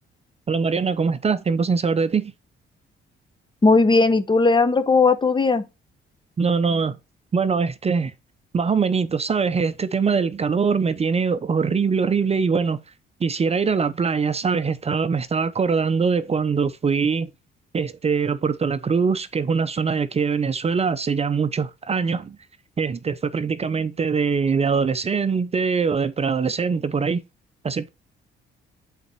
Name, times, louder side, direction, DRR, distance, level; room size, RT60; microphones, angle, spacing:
voice 1, 0.5-2.3 6.4-7.0 7.3-8.1 8.5-12.8 13.2-17.3 17.7-22.4 22.8-27.2 27.6-27.9, right 5 dB, 30° right, 0.6 m, -22 dB
voice 2, 3.6-5.6, left 3 dB, 25° left, 0.9 m, -17 dB
8.2 x 4.2 x 4.5 m
cardioid pair, 90°, 20 cm